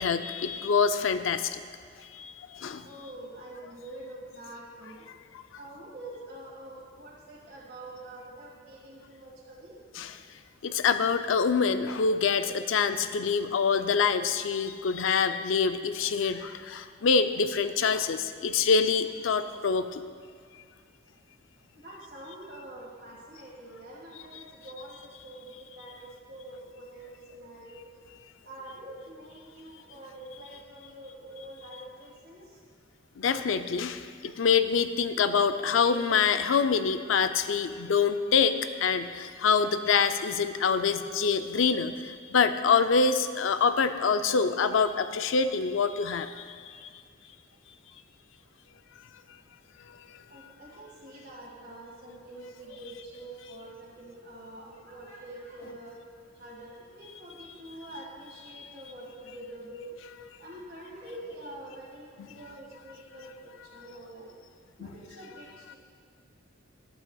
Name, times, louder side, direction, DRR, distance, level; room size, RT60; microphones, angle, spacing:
voice 1, 0.0-1.6 2.1-2.9 10.0-10.1 10.6-20.0 33.2-46.9 58.5-58.7 64.8-64.9, left 5 dB, 70° left, 10 dB, 0.5 m, -26 dB
voice 2, 2.8-5.1 5.5-9.7 21.7-27.9 28.4-32.6 50.3-56.0 56.3-59.9 60.4-64.3 64.8-65.8, right 1 dB, 55° right, -6 dB, 1.8 m, -46 dB
13.5 x 12.0 x 2.3 m, 2.1 s
head